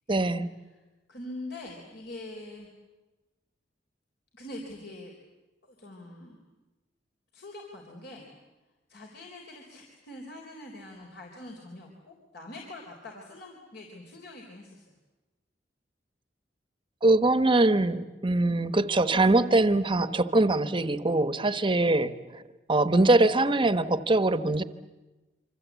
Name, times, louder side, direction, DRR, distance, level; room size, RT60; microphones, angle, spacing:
voice 1, 0.1-0.5 17.0-22.4 22.7-24.6, right 2 dB, 30° right, 12 dB, 1.0 m, -23 dB
voice 2, 1.1-2.7 4.3-5.1 5.6-6.4 7.3-8.3 8.9-14.9, left 1 dB, 65° left, 0 dB, 3.8 m, -44 dB
26.5 x 25.5 x 8.3 m, 1.1 s
head